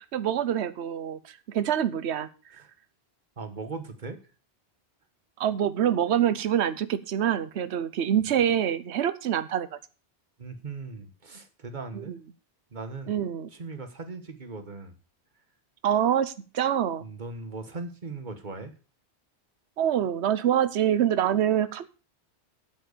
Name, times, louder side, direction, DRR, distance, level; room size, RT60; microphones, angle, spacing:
voice 1, 0.0-2.3 5.4-9.7 11.9-12.2 13.1-13.5 15.8-17.0 19.8-21.9, right 10 dB, 75° right, 14 dB, 1.1 m, -25 dB
voice 2, 3.4-4.2 10.4-12.2 12.7-13.2 13.5-14.9 17.0-18.8, right 3 dB, 45° right, 8 dB, 1.7 m, -39 dB
8.9 x 7.9 x 6.7 m, 0.35 s
omnidirectional pair, 1.1 m